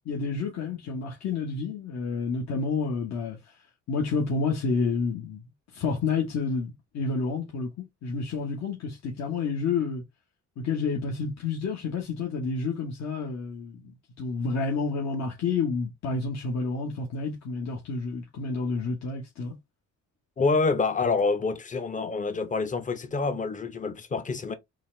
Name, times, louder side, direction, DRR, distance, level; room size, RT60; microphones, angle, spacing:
voice 1, 0.0-3.4 3.9-5.4 5.7-7.7 8.0-10.0 10.6-19.5, left 4 dB, 60° left, 1.1 m, -29 dB
voice 2, 20.4-24.5, left 4 dB, 25° left, 0.7 m, -27 dB
3.9 x 2.5 x 3.1 m
cardioid pair, 90°, 30 cm